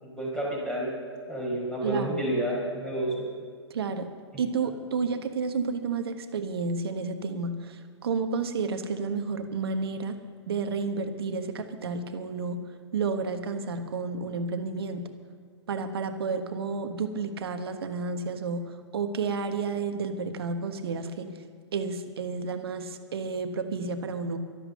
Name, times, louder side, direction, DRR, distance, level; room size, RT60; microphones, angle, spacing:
voice 1, 0.0-0.9 1.3-3.1, right 1 dB, 5° left, -3 dB, 4.5 m, -29 dB
voice 2, 1.8-2.2 3.7-4.1 4.4-10.2 10.5-12.6 12.9-15.1 15.7-21.3 21.7-24.4, right 4 dB, 55° right, 8 dB, 1.3 m, -31 dB
12.5 x 12.0 x 6.8 m, 2.1 s
figure-of-eight pair, 115°, 15 cm